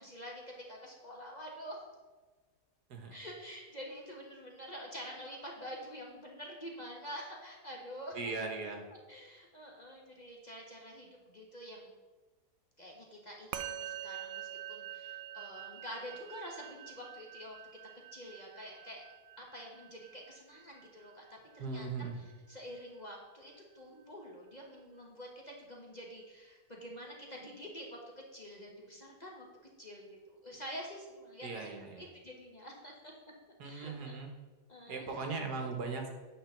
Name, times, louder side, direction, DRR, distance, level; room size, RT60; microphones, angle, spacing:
voice 1, 0.0-1.8 3.1-8.3 9.1-11.9 12.8-17.6 18.1-19.0 19.4-28.0 28.3-29.5 29.8-31.7 32.0-33.1 33.6-34.2 34.7-35.3, equal, 30° left, -2 dB, 1.2 m, -47 dB
voice 2, 8.1-8.8 21.6-22.2 31.4-32.0 33.6-34.3 34.9-36.1, right 4 dB, 70° right, 3 dB, 1.7 m, -38 dB
Musical instrument, 13.5-23.1, right 11 dB, 85° right, 1.2 m, -47 dB
9.2 x 4.1 x 7.2 m, 1.3 s
omnidirectional pair, 1.8 m